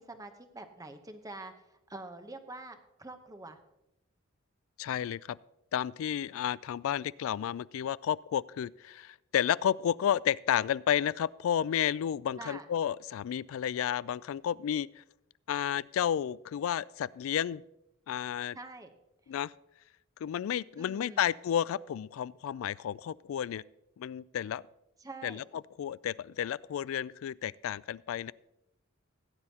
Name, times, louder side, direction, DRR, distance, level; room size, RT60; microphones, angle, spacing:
voice 1, 0.0-1.5 1.9-3.6 12.4-12.7 18.5-18.9 20.8-21.3 25.0-25.4, right 2 dB, 15° right, 7 dB, 0.8 m, -45 dB
voice 2, 4.8-5.4 5.7-15.0 15.5-17.6 18.1-18.6 19.3-19.5 20.2-23.6 24.0-24.6 25.2-25.4 25.8-28.3, left 9 dB, 80° left, 21 dB, 0.3 m, -31 dB
16.5 x 9.8 x 2.8 m, 0.87 s
head